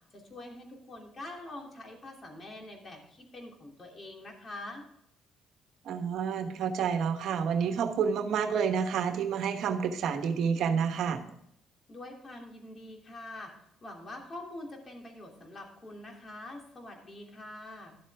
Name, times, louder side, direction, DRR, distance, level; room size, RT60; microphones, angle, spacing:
voice 1, 0.1-4.8 11.9-13.5 13.8-18.0, left 2 dB, 40° left, 1 dB, 2.9 m, -45 dB
voice 2, 5.8-11.2, right 7 dB, 70° right, 7 dB, 1.1 m, -29 dB
12.0 x 7.6 x 3.5 m, 0.77 s
supercardioid pair, 70°, 0 cm